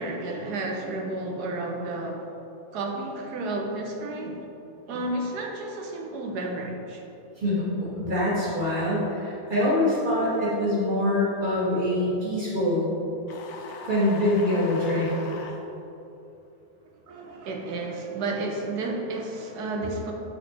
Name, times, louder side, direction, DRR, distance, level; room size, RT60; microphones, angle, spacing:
voice 1, 0.0-2.2 2.7-4.4 4.9-7.0 17.1-20.1, right 2 dB, 85° right, 1 dB, 1.3 m, -31 dB
voice 2, 7.4-12.9 13.8-15.1, left 1 dB, 30° right, -7 dB, 1.7 m, -24 dB
sound 1, 13.3-15.6, left 4 dB, 80° left, 1.2 m, -40 dB
7.7 x 4.4 x 3.3 m, 2.9 s
omnidirectional pair, 1.7 m